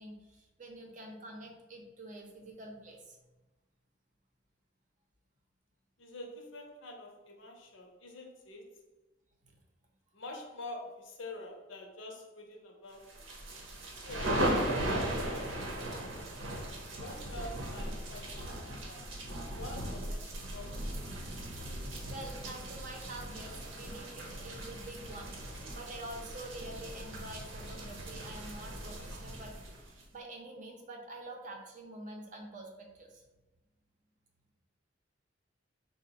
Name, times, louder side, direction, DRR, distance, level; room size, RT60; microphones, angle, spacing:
voice 1, 0.0-3.2 9.4-9.6 22.1-29.5 29.9-33.2, right 1 dB, 40° right, 1 dB, 0.6 m, -47 dB
voice 2, 6.0-8.7 10.1-13.3 14.1-16.1 16.9-19.1 19.5-20.9, left 2 dB, 75° left, 1 dB, 0.7 m, -46 dB
sound 1, 13.1-30.0, right 1 dB, 80° right, 0.8 m, -38 dB
4.2 x 2.1 x 3.9 m, 1.1 s
head